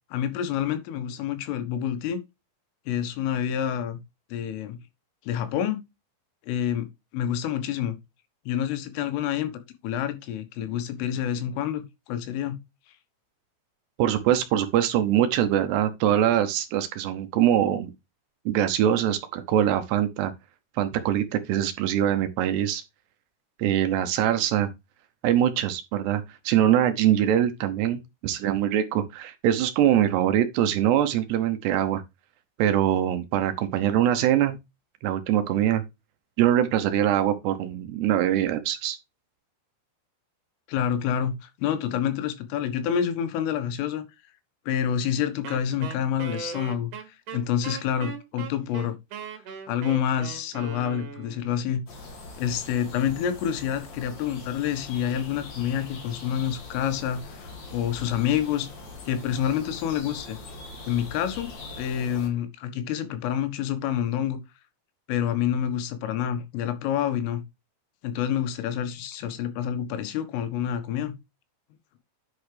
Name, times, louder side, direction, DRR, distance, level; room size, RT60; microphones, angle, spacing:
voice 1, 0.1-2.2 2.9-4.0 4.3-4.8 5.3-5.8 6.5-6.9 7.1-8.0 8.5-9.5 9.8-12.6 40.7-44.0 44.7-46.9 47.3-49.0 49.7-51.8 52.4-58.7 59.1-60.4 60.9-64.4 65.1-67.4 68.0-71.2, left 9 dB, 80° left, 3.8 m, -28 dB
voice 2, 14.0-17.9 18.5-20.3 20.8-22.8 23.6-24.7 25.2-32.0 32.6-34.6 35.0-35.8 36.4-39.0, right 11 dB, 80° right, 2.5 m, -23 dB
Wind instrument woodwind instrument, 45.4-51.5, right 7 dB, 60° right, 2.3 m, -39 dB
sound 1, 51.9-62.3, left 2 dB, 45° left, 2.7 m, -42 dB
10.5 x 5.8 x 3.3 m
omnidirectional pair, 5.9 m